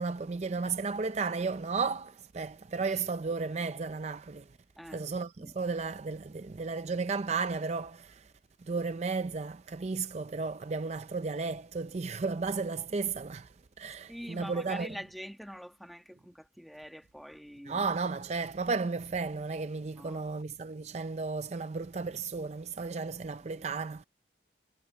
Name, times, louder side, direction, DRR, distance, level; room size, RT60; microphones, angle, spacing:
voice 1, 0.0-4.5 4.9-8.3 8.7-13.5 13.8-14.9 17.7-24.0, right 4 dB, 40° right, 0.4 m, -34 dB
voice 2, 14.1-17.8 20.0-20.2 23.6-23.7, equal, ahead, 1.3 m, -44 dB
head